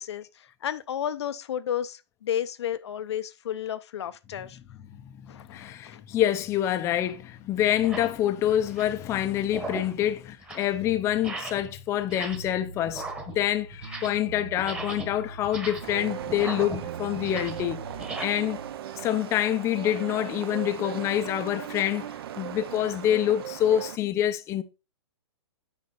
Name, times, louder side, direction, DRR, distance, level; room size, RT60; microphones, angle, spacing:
voice 1, 0.0-4.6 5.3-6.0 9.8-9.9, left 10 dB, 70° left, 0.7 m, -33 dB
voice 2, 5.0-17.8 18.2-18.6 19.0-22.1 22.4-24.6, left 11 dB, 20° left, 0.6 m, -26 dB
sound 1, 6.2-6.4 7.1-7.2 7.7-8.2 8.6-9.0 9.4-10.0 10.3-10.7 11.1-11.7 12.0-12.6 12.8-14.3 14.5-18.2, right 3 dB, 10° right, 1.2 m, -38 dB
sound 2, 12.3-18.7, right 3 dB, 70° right, 1.6 m, -42 dB
sound 3, 15.8-24.0, right 11 dB, 55° right, 0.8 m, -38 dB
8.8 x 5.0 x 4.2 m
hypercardioid pair, 145°, 15 cm